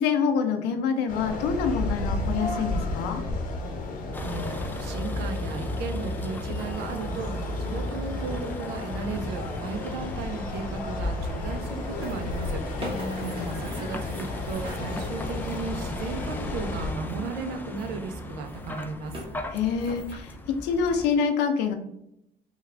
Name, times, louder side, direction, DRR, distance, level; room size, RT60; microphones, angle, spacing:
voice 1, 0.0-3.2 12.8-13.5 19.5-20.4 20.6-21.7, left 6 dB, 90° left, 6 dB, 0.6 m, -26 dB
sound 1, 1.1-16.9, left 2 dB, 55° left, 0.7 m, -33 dB
Vehicle, 4.1-21.1, left 1 dB, 10° left, 0.4 m, -36 dB
voice 2, 4.2-12.6 13.0-13.2 13.5-19.1, right 5 dB, 90° right, 6 dB, 0.5 m, -35 dB
sound 2, 11.6-15.8 17.0-18.0 18.4-19.3 19.8-20.2, equal, 30° right, 1.4 m, -41 dB
3.4 x 2.3 x 3.3 m, 0.80 s
cardioid pair, 110°, 17 cm